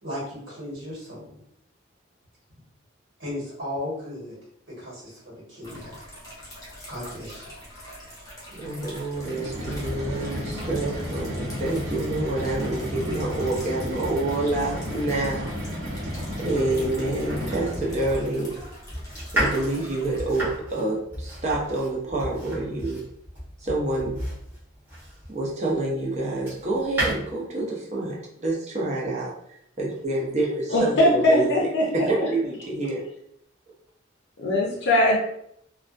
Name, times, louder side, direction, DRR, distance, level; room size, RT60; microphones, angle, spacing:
voice 1, 0.0-1.3 3.2-4.4 4.8-5.2 5.5-5.9 6.9-7.5, left 1 dB, 75° right, -6 dB, 1.2 m, -35 dB
sound 1, 5.6-20.4, equal, 20° left, 0.7 m, -44 dB
voice 2, 8.5-15.5 16.4-18.5 19.3-23.0 23.6-24.2 25.3-33.0, right 2 dB, 35° right, -3 dB, 0.6 m, -27 dB
sound 2, 9.1-18.2, equal, 90° right, 0.8 m, -33 dB
Domestic sounds home sounds, 17.3-25.4 26.0-27.1, right 1 dB, 10° right, 0.9 m, -32 dB
voice 3, 30.7-32.0 34.4-35.2, left 1 dB, 60° left, -2 dB, 0.5 m, -20 dB
2.3 x 2.2 x 2.5 m, 0.72 s
head